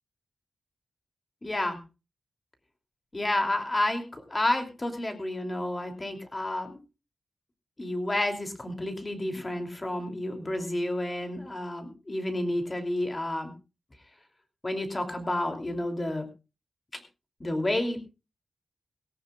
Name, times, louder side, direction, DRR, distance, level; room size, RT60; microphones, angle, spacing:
voice 1, 1.4-1.8 3.1-6.8 7.8-13.5 14.6-16.3 16.9-17.0 17.4-18.0, left 1 dB, 25° left, 6 dB, 2.8 m, -30 dB
18.5 x 17.5 x 2.4 m, 0.30 s
wide cardioid pair, 125°, 0 cm